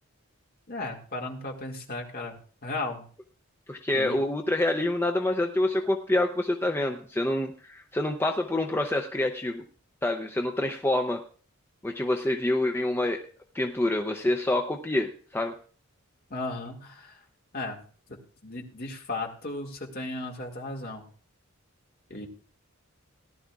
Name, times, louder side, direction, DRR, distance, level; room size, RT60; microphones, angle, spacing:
voice 1, 0.7-2.4 2.6-3.0 3.9-4.2 16.3-17.2 17.5-17.8 18.4-21.0 22.1-22.3, left 2 dB, 45° left, 1 dB, 2.1 m, -35 dB
voice 2, 3.7-9.6 10.0-11.2 11.8-13.2 13.5-15.5, left 1 dB, 10° left, 3 dB, 0.6 m, -27 dB
18.0 x 11.5 x 2.4 m, 0.42 s
head